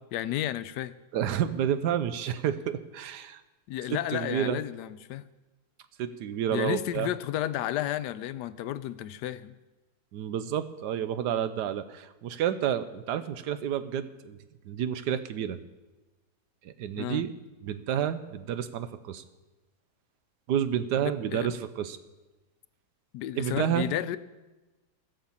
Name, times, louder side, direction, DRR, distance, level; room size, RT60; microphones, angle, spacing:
voice 1, 0.1-1.0 3.7-5.3 6.5-9.5 17.0-17.2 21.0-21.6 23.1-24.2, left 12 dB, 85° left, 15 dB, 1.2 m, -32 dB
voice 2, 1.1-3.4 3.9-4.6 6.0-7.1 10.1-14.4 14.6-15.6 16.6-17.3 17.6-19.2 20.5-22.0 23.4-23.9, right 9 dB, 90° right, 12 dB, 1.3 m, -30 dB
16.0 x 6.5 x 7.2 m, 1.1 s
omnidirectional pair, 1.7 m